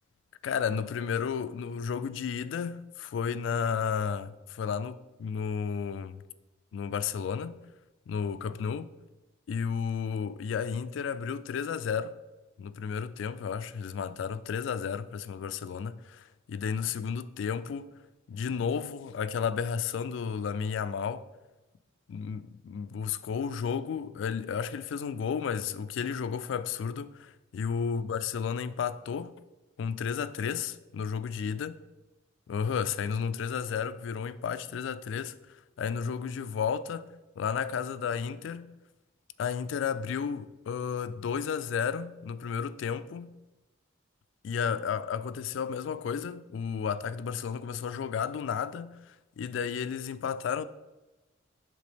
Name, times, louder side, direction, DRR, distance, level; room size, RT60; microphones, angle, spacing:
voice 1, 0.4-6.2 6.7-7.6 8.1-8.9 9.5-12.2 12.6-17.9 18.3-21.3 22.1-29.3 29.8-31.7 32.5-37.1 37.4-38.7 39.4-43.3 44.4-50.7, left 6 dB, 70° left, 0.3 m, -32 dB
7.5 x 3.6 x 3.5 m
head